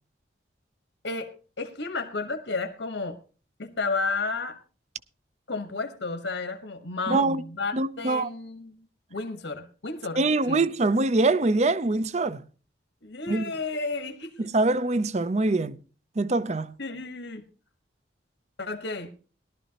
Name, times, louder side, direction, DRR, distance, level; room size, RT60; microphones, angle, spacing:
voice 1, 1.0-3.2 3.6-4.6 5.5-8.8 9.1-10.6 13.0-14.3 16.8-17.4 18.6-19.1, left 3 dB, 85° left, 1.3 m, -32 dB
voice 2, 7.1-7.4 7.7-8.3 10.2-12.4 13.3-13.5 14.4-15.8 16.2-16.7, right 2 dB, 35° right, 0.5 m, -24 dB
18.0 x 12.0 x 2.9 m
head